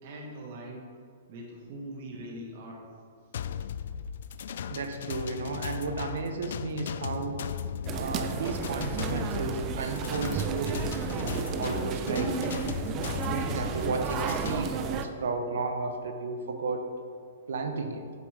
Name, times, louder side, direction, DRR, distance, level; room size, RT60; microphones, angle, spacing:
voice 1, 0.0-0.9 1.3-2.9, right 1 dB, 50° right, 0 dB, 1.5 m, -42 dB
sound 1, 3.3-14.6, left 8 dB, 65° left, 0.3 m, -37 dB
voice 2, 4.7-7.4 7.9-10.9 11.2-12.3 13.0-16.9 17.5-18.0, right 3 dB, 80° right, 6 dB, 0.8 m, -33 dB
sound 2, 7.9-15.1, right 7 dB, 30° right, 0.4 m, -32 dB
7.8 x 7.1 x 3.3 m, 2.1 s
hypercardioid pair, 150°, 0 cm